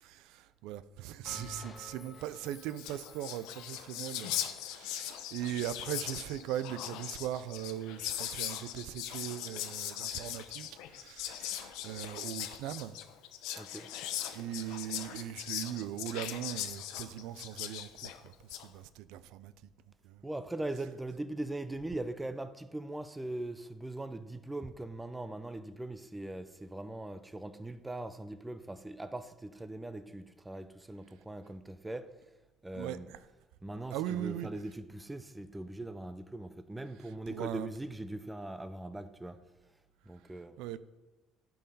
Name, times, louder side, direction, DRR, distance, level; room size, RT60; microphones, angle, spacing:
voice 1, 0.0-13.0 14.3-19.5 20.0-20.2 32.7-33.2 33.9-34.5 37.3-37.7 40.6-40.8, right 12 dB, 80° right, 0.4 m, -40 dB
Bell, 1.2-4.0, left 1 dB, 30° left, 1.5 m, -50 dB
Whispering, 2.4-2.5 2.7-18.7, left 11 dB, 85° left, 0.6 m, -40 dB
voice 2, 13.6-13.9 20.2-32.1 32.6-33.1 33.6-39.4 40.1-40.6, right 2 dB, 10° right, 0.4 m, -41 dB
10.5 x 4.7 x 5.3 m
cardioid pair, 120°, 0 cm